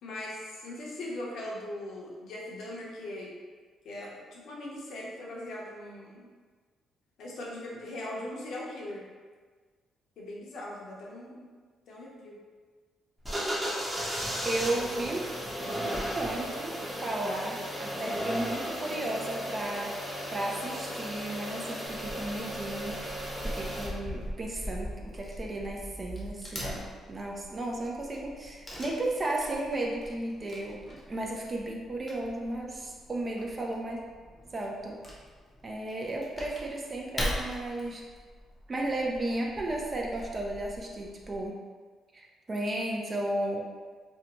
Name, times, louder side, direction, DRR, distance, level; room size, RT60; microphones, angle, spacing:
voice 1, 0.0-3.3 3.8-6.3 7.2-9.0 10.2-11.5 11.9-12.4 13.3-13.8, left 1 dB, 70° left, -4 dB, 0.7 m, -40 dB
sound 1, 13.2-23.9, equal, 10° right, 0.8 m, -35 dB
voice 2, 14.4-15.2 16.1-16.7 17.0-22.9 23.4-24.9 25.1-26.8 27.1-30.8 31.1-34.0 34.5-35.0 35.6-38.0 38.7-41.6 42.1-43.7, right 1 dB, 30° right, -1 dB, 0.4 m, -34 dB
Wood / Tearing, 21.9-41.5, equal, 25° left, 0.7 m, -42 dB
2.6 x 2.1 x 2.9 m, 1.5 s
cardioid pair, 90°, 0 cm